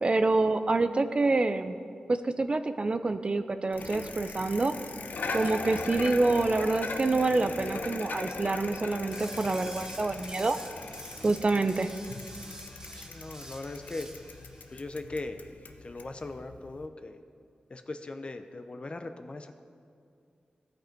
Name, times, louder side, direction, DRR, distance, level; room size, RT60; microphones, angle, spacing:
voice 1, 0.0-1.7 2.1-4.7 5.3-10.6 11.2-11.9, right 3 dB, 40° right, 10 dB, 0.4 m, -27 dB
Bicycle, 3.7-16.9, left 3 dB, 85° left, 0.6 m, -40 dB
sound 1, 9.1-14.8, right 1 dB, 25° right, 0.9 m, -47 dB
voice 2, 12.9-14.1 14.7-15.5 15.8-17.2 17.7-19.6, left 2 dB, 40° left, 8 dB, 0.6 m, -39 dB
15.0 x 5.2 x 4.5 m, 2.4 s
wide cardioid pair, 85°, 3 cm